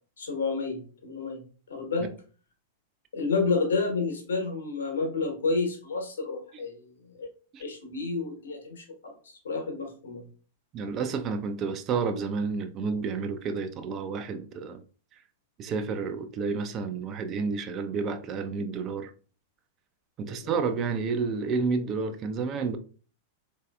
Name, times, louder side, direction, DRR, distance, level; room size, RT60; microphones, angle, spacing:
voice 1, 0.2-1.4 1.7-2.1 3.1-7.3 7.6-10.2 20.3-20.5, left 4 dB, 65° left, 1.0 m, -30 dB
voice 2, 10.7-14.8 15.6-19.1 20.2-22.8, right 5 dB, 30° right, 0.4 m, -30 dB
3.9 x 2.6 x 2.2 m
figure-of-eight pair, 95°, 0 cm